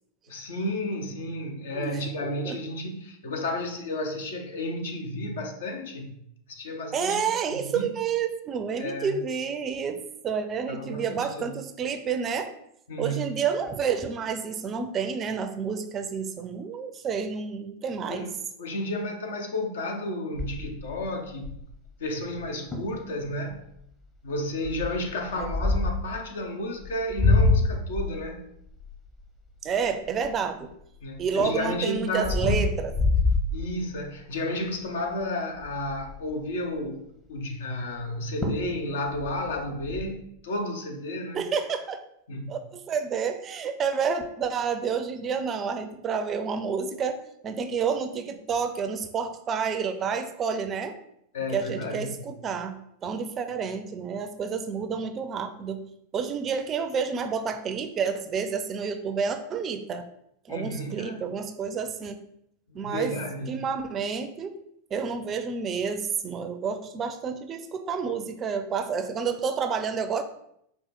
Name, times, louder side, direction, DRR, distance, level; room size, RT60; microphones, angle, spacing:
voice 1, 0.3-6.1 6.5-7.2 7.5-7.9 8.8-9.2 10.7-11.4 12.9-13.4 18.1-18.3 18.6-21.6 22.0-23.6 24.2-28.5 31.0-32.7 33.5-41.5 42.3-42.6 51.3-52.1 60.5-61.2 62.7-63.7, left 1 dB, 65° left, 4 dB, 0.7 m, -32 dB
voice 2, 1.7-2.6 6.9-12.5 13.0-18.3 25.3-25.5 29.6-30.7 31.2-32.9 41.3-42.0 42.5-47.2 47.4-51.0 51.5-55.8 56.1-60.1 60.5-62.2 62.7-63.1 63.5-64.5 64.9-70.2, right 6 dB, 30° right, 8 dB, 0.4 m, -29 dB
sound 1, 20.4-21.8 22.4-22.5 22.7-23.0 23.5-23.8 24.6-26.1 26.8-30.7 31.2-34.2 34.7-34.9 35.2-35.3 35.6-36.3 38.0-38.1 38.4-38.8 39.1-40.0, left 3 dB, 20° left, 0.9 m, -26 dB
5.0 x 2.4 x 3.9 m, 0.75 s
figure-of-eight pair, 90°, 0 cm